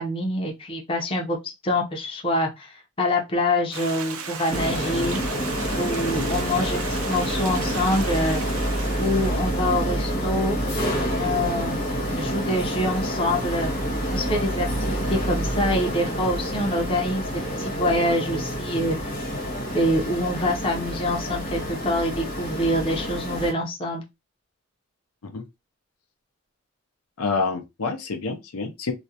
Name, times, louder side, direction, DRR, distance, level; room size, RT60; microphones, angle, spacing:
voice 1, 0.0-1.4 1.6-5.2 5.8-8.4 9.0-10.6 11.2-11.8 12.1-13.7 14.1-17.2 17.6-19.0 19.7-24.0, left 1 dB, 25° left, 0.5 m, -25 dB
Stream, 3.7-9.8, right 5 dB, 80° right, 0.5 m, -35 dB
sound 1, 4.5-23.5, equal, 50° left, 1.0 m, -28 dB
voice 2, 27.2-28.9, left 4 dB, 85° left, 0.6 m, -28 dB
2.4 x 2.1 x 2.7 m
head